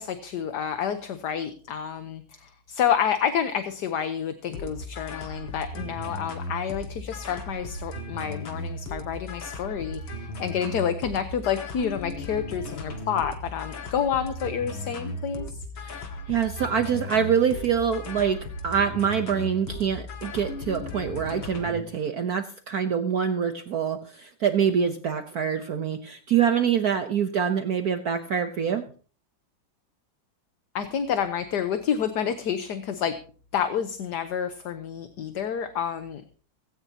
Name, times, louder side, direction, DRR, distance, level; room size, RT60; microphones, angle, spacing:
voice 1, 0.0-15.6 30.7-33.2 33.5-36.4, left 8 dB, 60° left, 9 dB, 1.5 m, -29 dB
sound 1, 4.5-21.9, left 1 dB, 80° left, 2.6 m, -36 dB
voice 2, 15.8-18.4 18.6-28.8, right 7 dB, 55° right, 7 dB, 1.3 m, -25 dB
17.0 x 16.5 x 2.9 m, 0.40 s
omnidirectional pair, 2.2 m